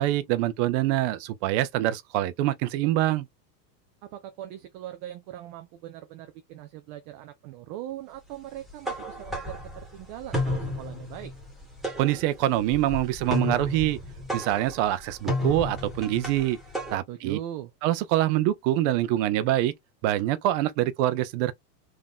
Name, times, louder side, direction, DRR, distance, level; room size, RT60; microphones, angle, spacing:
voice 1, 0.0-3.3 12.0-14.0 14.3-16.6 16.9-17.4 17.8-19.7 20.0-21.5, right 14 dB, 50° right, 0.7 m, -25 dB
voice 2, 4.0-11.3 17.1-17.7, right 12 dB, 30° right, 0.3 m, -40 dB
sound 1, 8.6-17.0, left 1 dB, ahead, 1.5 m, -32 dB
3.7 x 2.9 x 3.6 m
supercardioid pair, 135°, 50 cm